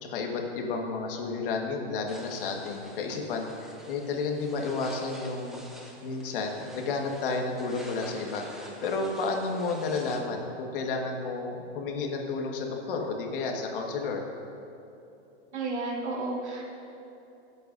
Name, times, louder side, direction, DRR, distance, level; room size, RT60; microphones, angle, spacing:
voice 1, 0.0-5.6 6.0-8.4 8.8-14.2, left 4 dB, 50° left, 1 dB, 1.7 m, -31 dB
sound 1, 2.1-10.2, equal, ahead, 0.6 m, -48 dB
voice 2, 15.5-16.6, right 3 dB, 80° right, -2 dB, 2.6 m, -32 dB
20.5 x 8.0 x 2.7 m, 2.9 s
hypercardioid pair, 150°, 34 cm